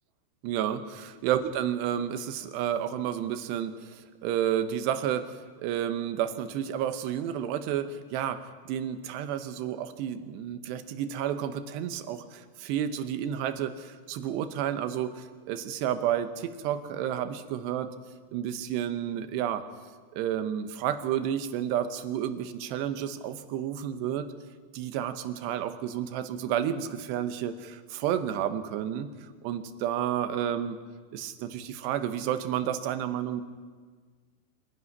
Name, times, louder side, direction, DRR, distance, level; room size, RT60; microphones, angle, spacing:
voice 1, 0.4-5.3 5.6-17.9 18.3-19.6 20.1-24.3 24.7-29.1 29.4-30.8 31.1-33.4, right 10 dB, 80° right, 9 dB, 3.1 m, -31 dB
25.0 x 11.0 x 9.6 m, 1.5 s
omnidirectional pair, 5.0 m